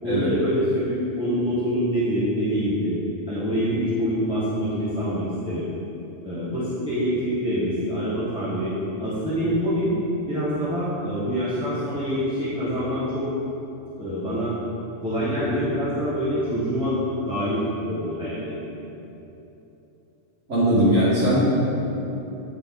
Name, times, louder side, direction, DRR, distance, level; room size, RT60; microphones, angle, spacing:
voice 1, 0.0-2.9 3.3-5.7 6.2-8.7 9.0-9.9 10.3-13.3 14.0-14.5 15.0-17.0 17.3-18.6, equal, 5° right, -12 dB, 1.0 m, -25 dB
voice 2, 20.5-21.6, equal, 70° right, -13 dB, 1.8 m, -19 dB
9.0 x 3.9 x 3.6 m, 3.0 s
omnidirectional pair, 1.3 m